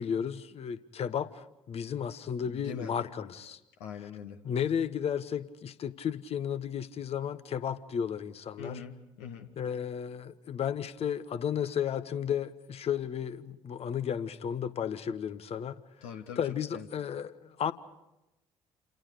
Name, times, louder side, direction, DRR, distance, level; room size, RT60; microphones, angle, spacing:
voice 1, 0.0-3.6 4.4-8.8 9.6-15.8 16.4-17.7, left 8 dB, 40° left, 13 dB, 1.3 m, -33 dB
voice 2, 2.5-2.9 3.8-4.4 8.6-9.5 16.0-16.4 16.7-16.8, left 7 dB, 65° left, 5 dB, 1.7 m, -42 dB
29.5 x 28.0 x 5.0 m, 0.95 s
figure-of-eight pair, 50°, 15 cm